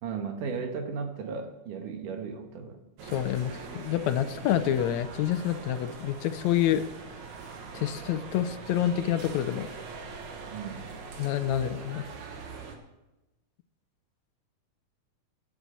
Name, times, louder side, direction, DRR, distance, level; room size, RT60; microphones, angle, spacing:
voice 1, 0.0-2.8 10.4-10.9, right 5 dB, 85° right, 5 dB, 3.0 m, -35 dB
sound 1, 3.0-12.8, right 5 dB, 70° right, 2.8 m, -42 dB
voice 2, 3.1-6.9 7.7-9.7 11.2-12.0, left 11 dB, 75° left, 11 dB, 1.8 m, -27 dB
15.0 x 10.5 x 4.4 m, 1.0 s
omnidirectional pair, 3.6 m